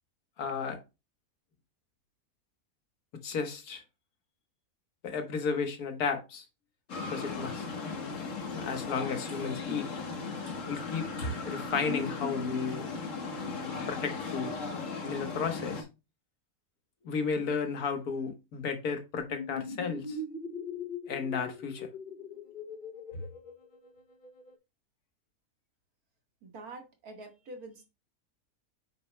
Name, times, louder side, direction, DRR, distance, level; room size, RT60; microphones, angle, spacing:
voice 1, 0.4-0.8 3.2-3.8 5.0-6.5 7.1-7.7 8.5-9.9 10.7-12.9 13.9-14.6 15.0-15.8 17.0-20.2 21.1-21.9, left 5 dB, 85° left, 1.6 m, -33 dB
sound 1, 6.9-15.8, left 4 dB, 60° left, 1.6 m, -37 dB
sound 2, 19.2-24.5, left 3 dB, 45° left, 0.7 m, -41 dB
voice 2, 26.4-27.9, right 2 dB, 80° right, 2.1 m, -46 dB
8.4 x 6.4 x 2.2 m
omnidirectional pair, 1.6 m